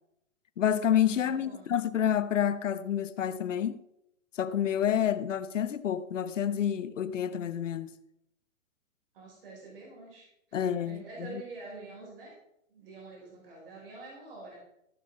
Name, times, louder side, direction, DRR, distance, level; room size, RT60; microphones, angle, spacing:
voice 1, 0.6-3.8 4.3-7.9 10.5-11.4, left 9 dB, 65° left, 0.9 m, -29 dB
voice 2, 1.2-1.7 9.1-12.3 12.7-14.6, right 3 dB, 45° right, 5.1 m, -47 dB
15.0 x 6.6 x 4.1 m
hypercardioid pair, 175°, 40 cm